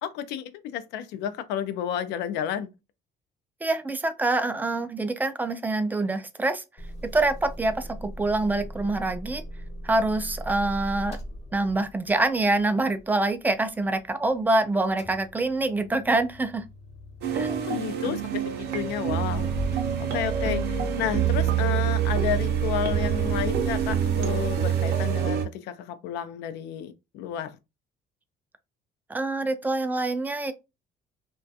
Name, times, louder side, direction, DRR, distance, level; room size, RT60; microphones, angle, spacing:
voice 1, 0.0-2.7 17.6-19.5 20.1-27.6, left 9 dB, 90° left, 0.4 m, -31 dB
voice 2, 3.6-6.6 7.1-9.4 9.8-11.2 11.5-16.6 17.3-17.6 29.1-30.5, right 2 dB, 10° right, 0.3 m, -25 dB
Motor vehicle (road) / Engine starting / Idling, 6.8-14.5 14.8-24.6, equal, 40° left, 0.7 m, -38 dB
sound 1, 17.2-25.4, right 10 dB, 75° right, 0.6 m, -26 dB
2.3 x 2.2 x 2.6 m
cardioid pair, 110°, 17 cm